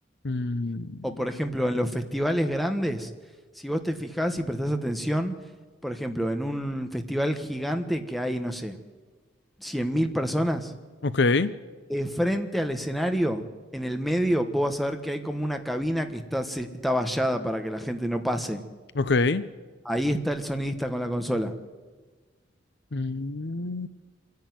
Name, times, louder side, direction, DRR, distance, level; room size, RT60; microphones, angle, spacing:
voice 1, 0.2-1.0 11.0-11.5 19.0-19.4 22.9-23.9, left 3 dB, 60° left, 14 dB, 0.7 m, -25 dB
voice 2, 1.0-3.1 3.6-5.3 5.8-8.8 9.6-10.7 11.9-13.4 13.7-18.6 19.8-21.5, equal, ahead, 6 dB, 1.3 m, -27 dB
26.0 x 10.5 x 9.5 m, 1.4 s
head